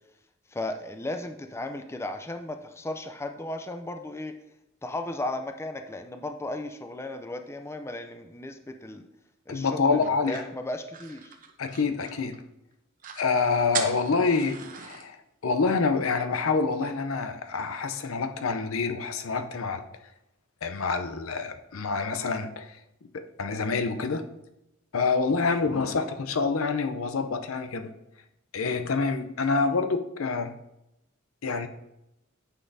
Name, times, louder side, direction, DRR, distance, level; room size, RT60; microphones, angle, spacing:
voice 1, 0.5-4.3 4.8-9.1 9.5-11.3, left 2 dB, 15° left, 7 dB, 0.4 m, -35 dB
voice 2, 9.5-10.4 11.6-12.4 13.2-15.2 15.4-19.8 20.6-22.7 23.1-24.3 24.9-27.9 28.5-30.5 31.4-31.7, left 4 dB, 75° left, 8 dB, 0.6 m, -27 dB
sound 1, 10.0-12.4 12.7-12.8 13.0-13.3 13.7-15.0, right 7 dB, 40° right, 0.8 m, -38 dB
9.4 x 6.0 x 2.7 m, 0.89 s
head